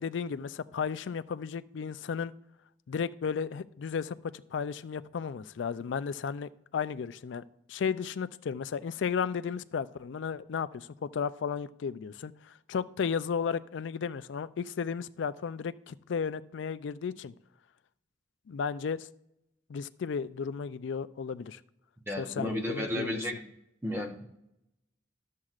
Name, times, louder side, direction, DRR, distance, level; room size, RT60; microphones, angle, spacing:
voice 1, 0.0-2.3 2.9-7.4 7.7-17.3 18.5-19.1 19.7-21.6 22.2-23.2, left 6 dB, 75° left, 14 dB, 0.4 m, -34 dB
voice 2, 22.1-23.5 23.8-24.2, left 1 dB, 15° right, 1 dB, 0.8 m, -33 dB
13.0 x 7.4 x 2.4 m, 0.81 s
head